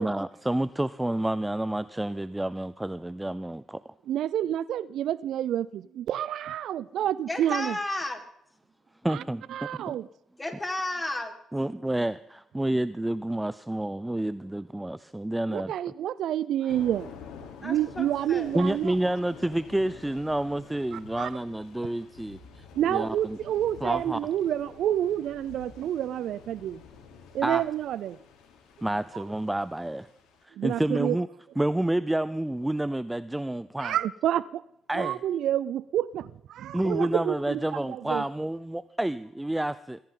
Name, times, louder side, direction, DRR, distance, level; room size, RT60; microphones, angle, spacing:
voice 1, 0.0-3.9 9.0-9.9 11.5-15.9 16.6-16.8 18.5-22.6 22.9-23.4 23.8-24.2 27.4-27.6 28.8-30.1 30.4-31.3 31.6-34.0 34.9-35.2 36.7-40.0, right 1 dB, 10° right, 0.6 m, -29 dB
voice 2, 4.1-7.7 9.1-9.2 9.5-10.1 15.5-18.9 20.9-21.3 22.8-26.8 27.3-28.2 30.6-31.2 33.8-34.6 34.9-37.6 37.9-38.2, right 11 dB, 70° right, 0.5 m, -29 dB
voice 3, 7.3-8.2 9.2-9.3 10.4-11.3 17.6-18.6, left 1 dB, 20° left, 4.4 m, -33 dB
Thunder / Rain, 16.7-30.4, left 6 dB, 75° left, 3.4 m, -49 dB
21.5 x 16.0 x 3.9 m
hypercardioid pair, 50°, 0 cm